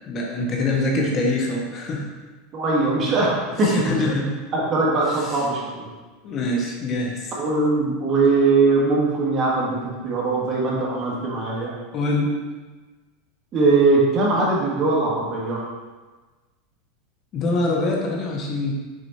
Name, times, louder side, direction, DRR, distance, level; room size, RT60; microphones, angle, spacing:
voice 1, 0.1-2.1 3.6-4.4 5.1-5.4 6.2-7.3 11.9-12.4 17.3-18.7, left 2 dB, 35° left, -1 dB, 1.0 m, -24 dB
voice 2, 2.5-4.1 4.5-5.9 7.4-9.8 10.0-11.7 13.5-15.6, right 3 dB, 30° right, -4 dB, 1.9 m, -21 dB
6.5 x 4.4 x 4.3 m, 1.3 s
supercardioid pair, 140°, 0 cm